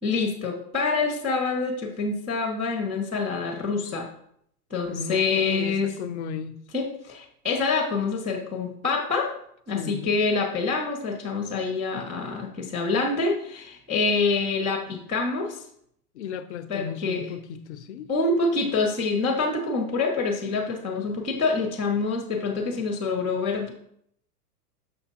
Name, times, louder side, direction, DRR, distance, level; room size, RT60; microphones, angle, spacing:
voice 1, 0.0-4.1 4.7-5.9 6.7-9.3 9.7-15.6 16.7-17.2 18.1-23.7, left 4 dB, 10° right, -12 dB, 0.3 m, -26 dB
voice 2, 4.9-6.5 9.7-10.2 16.1-18.1, left 7 dB, 45° left, 12 dB, 0.6 m, -35 dB
6.7 x 5.9 x 2.8 m, 0.70 s
hypercardioid pair, 150°, 47 cm